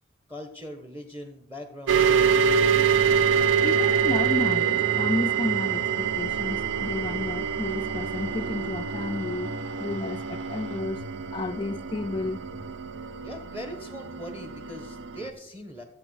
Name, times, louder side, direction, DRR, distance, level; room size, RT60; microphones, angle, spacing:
voice 1, 0.3-2.1 11.5-11.6 13.2-15.8, equal, 10° right, 1.1 m, -40 dB
sound 1, 1.9-15.3, right 7 dB, 80° right, 0.6 m, -26 dB
sound 2, 2.9-10.8, equal, 60° right, 2.4 m, -47 dB
voice 2, 3.6-12.8, left 2 dB, 25° left, 0.3 m, -32 dB
13.5 x 8.2 x 4.7 m
head